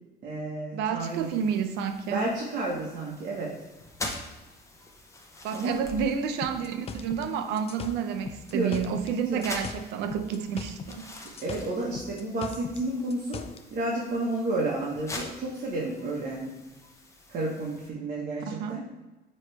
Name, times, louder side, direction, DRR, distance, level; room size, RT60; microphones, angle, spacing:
voice 1, 0.2-1.3 2.1-3.5 5.5-5.8 8.5-8.7 9.3-9.4 11.2-13.4 13.7-16.5 17.3-18.8, right 2 dB, 55° right, -4 dB, 1.3 m, -31 dB
voice 2, 0.7-2.3 5.4-11.1 18.4-18.9, right 7 dB, 90° right, 9 dB, 0.6 m, -30 dB
sound 1, 1.0-17.9, left 2 dB, 15° left, 0.9 m, -45 dB
sound 2, 6.4-9.2 9.4-11.0 11.3-13.6, left 5 dB, 35° left, 0.4 m, -40 dB
9.4 x 3.2 x 3.3 m, 1.2 s
cardioid pair, 110°, 17 cm